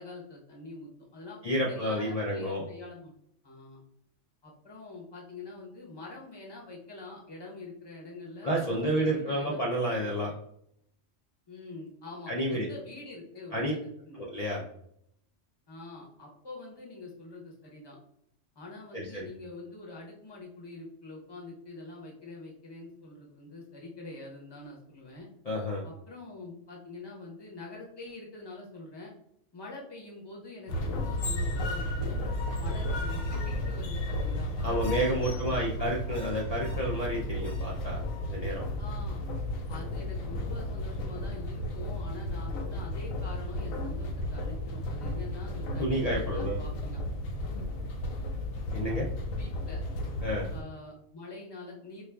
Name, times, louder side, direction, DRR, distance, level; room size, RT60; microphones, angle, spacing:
voice 1, 0.0-1.4 1.7-3.1 3.4-3.8 4.4-9.6 11.5-13.8 14.1-14.2 15.7-18.0 18.5-25.3 25.8-29.1 29.5-32.2 32.6-35.7 38.8-39.2 39.7-47.0 47.4-47.7 49.4-49.8 50.5-52.0, left 2 dB, 25° left, -2 dB, 0.7 m, -45 dB
voice 2, 1.4-2.6 8.4-10.3 12.3-12.7 13.5-13.7 14.2-14.6 18.9-19.3 25.5-25.9 34.6-38.0 38.3-38.7 45.8-46.6 48.7-49.1 50.2-50.5, equal, 65° left, -3 dB, 0.3 m, -30 dB
sound 1, 30.7-50.6, left 1 dB, 90° left, 1.0 m, -33 dB
4.7 x 2.4 x 2.2 m, 0.72 s
omnidirectional pair, 1.3 m